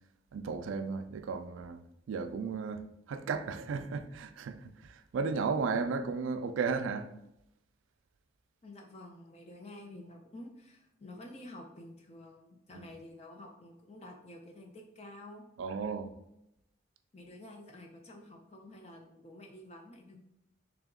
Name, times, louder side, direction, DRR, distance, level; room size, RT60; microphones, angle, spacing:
voice 1, 0.3-7.1 12.7-12.8 15.6-16.1, right 5 dB, 75° right, 0.3 m, -35 dB
voice 2, 8.6-15.4 17.1-20.2, left 1 dB, 30° left, 0.4 m, -50 dB
3.4 x 2.9 x 3.6 m
head